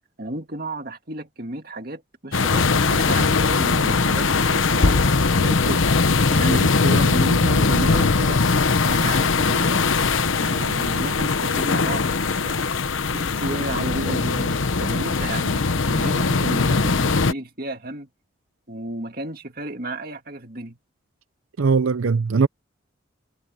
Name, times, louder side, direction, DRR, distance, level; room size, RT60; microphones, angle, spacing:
voice 1, 0.2-5.1 5.4-5.9 6.3-8.4 8.8-9.8 10.3-12.6 13.1-18.1 18.7-20.8, right 1 dB, 45° right, 2.2 m, -32 dB
sound 1, 2.3-17.3, left 4 dB, 80° left, 1.0 m, -20 dB
voice 2, 21.6-22.5, right 5 dB, 90° right, 0.6 m, -19 dB
head